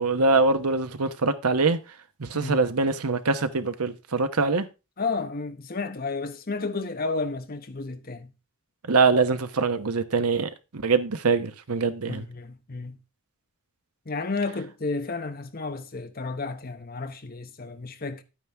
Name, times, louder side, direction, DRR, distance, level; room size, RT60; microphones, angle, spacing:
voice 1, 0.0-1.8 2.2-4.7 8.9-12.2, right 3 dB, 85° right, 1.0 m, -23 dB
voice 2, 5.0-8.3 12.1-13.0 14.1-18.2, left 3 dB, 40° left, 0.9 m, -32 dB
11.0 x 9.2 x 3.5 m
head